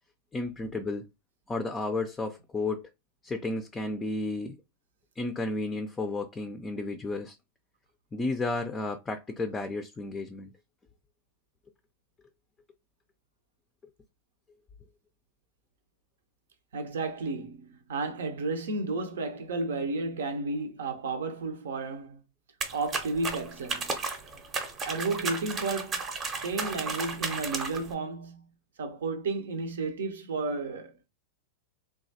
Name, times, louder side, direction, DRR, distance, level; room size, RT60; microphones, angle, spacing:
voice 1, 0.3-1.1 1.5-2.9 3.2-4.6 5.2-7.4 8.1-10.5, left 2 dB, 15° left, 0.4 m, -32 dB
voice 2, 16.7-22.2 22.7-23.9 24.8-26.0 26.4-28.5 28.8-31.1, right 3 dB, 75° right, 0.6 m, -32 dB
sound 1, 22.6-27.9, right 4 dB, 30° right, 0.7 m, -34 dB
3.1 x 2.3 x 2.6 m
hypercardioid pair, 100°, 0 cm